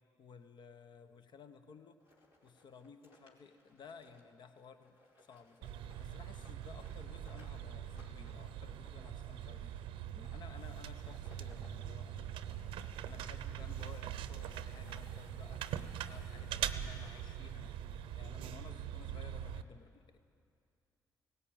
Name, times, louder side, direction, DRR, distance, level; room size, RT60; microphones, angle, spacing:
voice 1, 0.2-2.0 2.4-5.0 5.3-9.7 10.1-12.4 13.0-15.8 16.1-17.7 18.1-20.2, left 6 dB, 55° left, 9 dB, 1.1 m, -56 dB
sound 1, 2.0-14.0 14.4-16.9, left 1 dB, 80° left, 3.2 m, -66 dB
sound 2, 5.6-19.6, right 10 dB, 75° right, 0.7 m, -42 dB
18.0 x 17.0 x 9.0 m, 2.5 s
hypercardioid pair, 45°, 9 cm